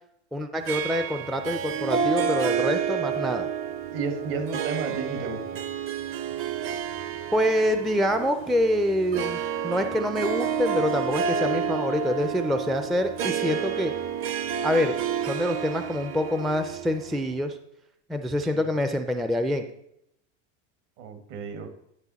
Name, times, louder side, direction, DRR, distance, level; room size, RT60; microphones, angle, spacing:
voice 1, 0.3-3.5 7.3-13.9 14.6-15.0 15.2-17.6 18.1-19.7, equal, ahead, 8 dB, 0.3 m, -26 dB
Harp, 0.7-17.4, right 7 dB, 35° right, 0.7 m, -30 dB
voice 2, 3.9-5.6 18.5-18.7 21.0-21.7, right 4 dB, 65° right, 7 dB, 1.8 m, -32 dB
sound 1, 6.2-11.5, right 4 dB, 90° right, 3.1 m, -52 dB
11.0 x 5.5 x 4.0 m, 0.78 s
supercardioid pair, 120°, 37 cm